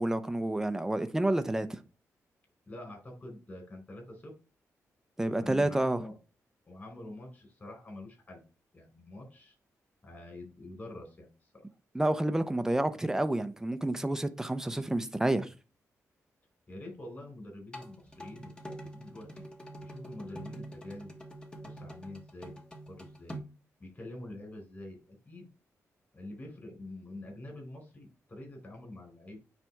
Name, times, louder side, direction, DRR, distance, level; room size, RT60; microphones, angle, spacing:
voice 1, 0.0-1.8 5.2-6.0 11.9-15.5, right 1 dB, 10° right, 0.7 m, -29 dB
voice 2, 2.7-4.3 5.2-6.2 6.7-8.4 8.7-9.5 10.0-11.7 16.7-19.3 19.8-21.1 21.6-22.6 22.9-23.4 23.8-25.5 26.1-29.4, left 1 dB, 30° left, 4.6 m, -46 dB
sound 1, 17.7-23.4, right 1 dB, 15° left, 1.4 m, -45 dB
9.0 x 3.4 x 4.6 m
cardioid pair, 90°, 6 cm